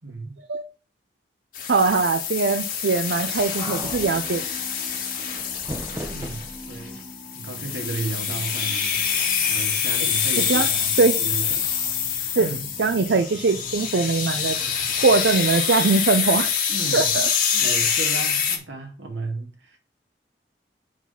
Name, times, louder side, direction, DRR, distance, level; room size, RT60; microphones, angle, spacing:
voice 1, 0.0-0.3 6.1-7.0 7.3-9.0 9.4-11.7 12.4-12.7 16.7-17.1 17.5-19.8, right 3 dB, 90° right, 2.2 m, -34 dB
sound 1, 1.5-18.6, left 7 dB, 50° left, 1.7 m, -26 dB
voice 2, 1.7-4.4 10.4-10.7 11.0-11.2 12.3-12.5 12.8-14.6 15.0-16.5 16.9-17.3 17.6-17.7, right 4 dB, 70° right, 0.5 m, -21 dB
sound 2, 3.6-16.4, equal, 5° left, 3.1 m, -43 dB
sound 3, 5.3-6.9, equal, 15° right, 1.0 m, -36 dB
5.9 x 4.8 x 5.7 m
head